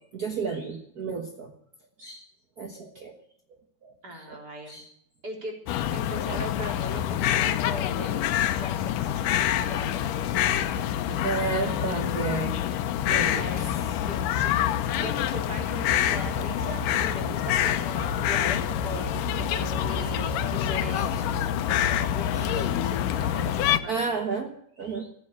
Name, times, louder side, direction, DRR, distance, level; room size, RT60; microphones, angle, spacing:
voice 1, 0.1-1.5 2.0-2.2 2.6-3.1 3.8-4.4 4.7-4.9 6.3-6.4 11.2-12.6 13.1-14.0 21.0-21.4 22.3-22.6 23.9-25.1, right 4 dB, 65° right, 4 dB, 0.9 m, -33 dB
voice 2, 4.0-4.8 5.2-5.5 5.9-11.9 13.1-24.1, equal, 30° right, 1 dB, 4.1 m, -40 dB
sound 1, 5.7-23.8, left 10 dB, 90° left, 2.4 m, -26 dB
15.5 x 9.5 x 8.7 m, 0.70 s
omnidirectional pair, 3.6 m